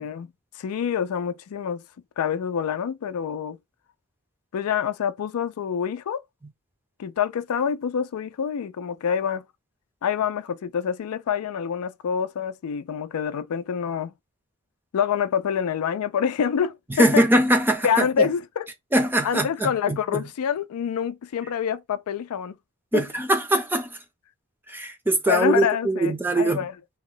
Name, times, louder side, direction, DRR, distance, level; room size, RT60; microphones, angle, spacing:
voice 1, 0.0-1.8 2.2-3.6 4.5-6.2 7.0-9.4 10.0-14.1 14.9-17.3 17.8-18.7 19.2-22.6 22.9-23.0 25.3-26.7, left 7 dB, 85° left, 0.4 m, -26 dB
voice 2, 17.0-18.3 18.9-20.2 22.9-23.9 24.7-26.6, right 1 dB, 10° right, 0.5 m, -22 dB
2.8 x 2.2 x 3.8 m
head